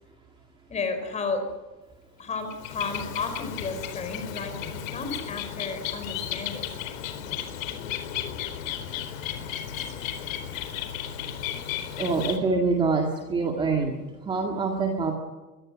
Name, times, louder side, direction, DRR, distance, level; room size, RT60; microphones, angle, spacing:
voice 1, 0.7-1.4 2.2-4.5 4.9-6.7, left 4 dB, 15° left, 7 dB, 4.7 m, -32 dB
Bird, 2.4-12.4, left 10 dB, 50° left, 4.2 m, -34 dB
voice 2, 12.0-13.9 14.3-15.1, right 4 dB, 10° right, 2 dB, 2.0 m, -25 dB
24.5 x 23.5 x 6.4 m, 1.2 s
supercardioid pair, 155°, 49 cm